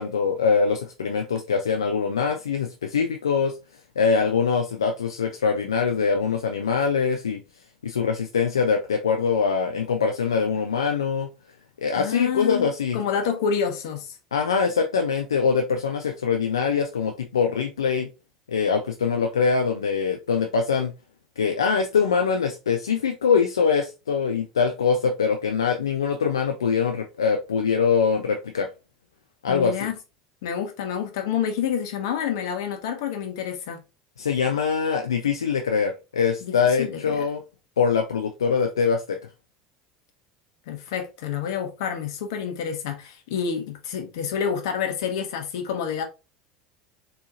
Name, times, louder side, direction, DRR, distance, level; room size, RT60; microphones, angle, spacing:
voice 1, 0.0-3.6 4.0-7.4 7.8-11.3 11.8-13.0 14.3-18.1 18.5-20.9 21.4-28.7 29.4-29.9 34.2-37.4 37.8-39.2, left 5 dB, 85° left, 0.3 m, -23 dB
voice 2, 12.0-14.2 29.5-29.9 30.4-33.8 36.4-37.3 40.7-46.0, left 7 dB, 70° left, 0.9 m, -28 dB
4.0 x 2.8 x 2.4 m
hypercardioid pair, 75°, 2 cm